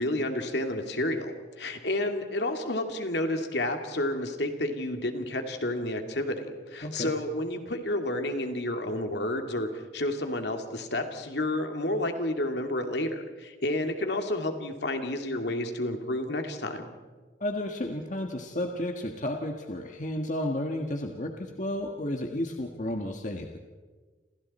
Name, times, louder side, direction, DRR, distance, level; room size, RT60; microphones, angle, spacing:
voice 1, 0.0-16.9, left 1 dB, 65° left, 5 dB, 2.6 m, -30 dB
voice 2, 6.8-7.1 17.4-23.6, left 1 dB, 40° left, 3 dB, 1.6 m, -32 dB
29.5 x 28.0 x 4.3 m, 1.4 s
head